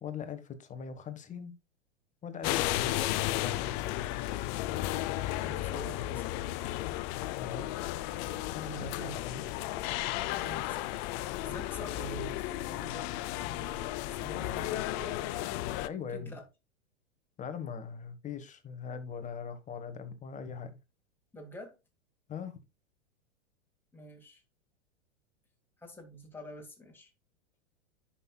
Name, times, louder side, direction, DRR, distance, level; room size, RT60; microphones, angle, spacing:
voice 1, 0.0-1.5 2.2-4.1 7.4-7.9 8.5-9.5 15.8-16.4 17.4-20.8 22.3-22.6, left 6 dB, 20° left, 1.3 m, -41 dB
sound 1, 2.4-15.9, left 15 dB, 40° left, 0.6 m, -34 dB
voice 2, 5.4-6.5 8.6-9.1 10.4-15.6 16.1-16.5 21.3-21.8 23.9-24.4 25.8-27.1, right 1 dB, 5° left, 2.6 m, -47 dB
11.0 x 5.8 x 2.3 m
hypercardioid pair, 110°, 34 cm